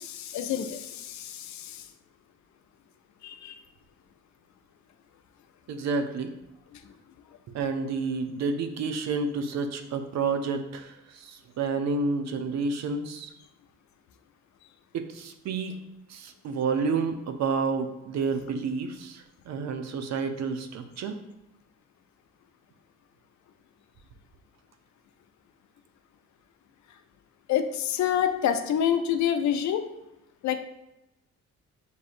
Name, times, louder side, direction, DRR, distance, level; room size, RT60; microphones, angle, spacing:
voice 1, 0.0-1.8 3.2-3.5 27.5-29.9 30.4-30.6, left 9 dB, 70° left, 8 dB, 0.5 m, -27 dB
voice 2, 5.7-6.3 7.5-13.3 14.9-15.8 16.1-21.2, right 4 dB, 60° right, 7 dB, 0.6 m, -30 dB
6.4 x 2.7 x 2.5 m, 0.94 s
cardioid pair, 90°, 30 cm